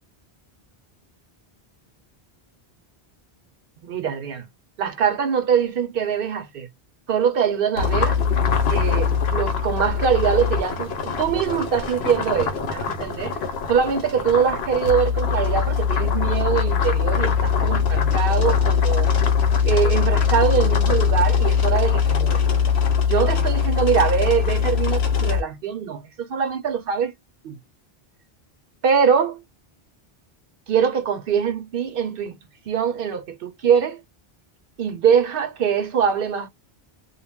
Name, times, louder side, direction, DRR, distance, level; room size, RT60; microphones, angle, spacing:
voice 1, 3.8-4.5 4.8-6.7 7.1-8.2 8.7-13.4 13.7-19.1 19.7-22.4 23.1-27.1 27.4-27.6 28.8-29.4 30.7-32.4 32.6-34.0 34.8-36.5, right 7 dB, 65° right, 0.8 m, -23 dB
Boiling Water, 7.8-25.4, left 6 dB, 80° left, 1.0 m, -21 dB
2.1 x 2.1 x 3.4 m
omnidirectional pair, 1.0 m